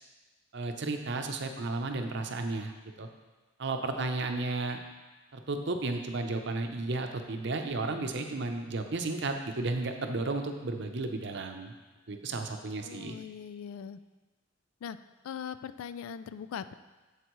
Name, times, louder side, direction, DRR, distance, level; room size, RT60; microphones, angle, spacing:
voice 1, 0.5-2.7 3.0-3.1 3.6-4.8 5.3-11.7 12.1-13.2, right 3 dB, 55° right, 5 dB, 0.7 m, -33 dB
voice 2, 4.0-4.4 12.8-14.0 14.8-15.0 15.2-16.7, left 8 dB, 85° left, 13 dB, 0.3 m, -41 dB
7.9 x 7.3 x 3.1 m, 1.2 s
head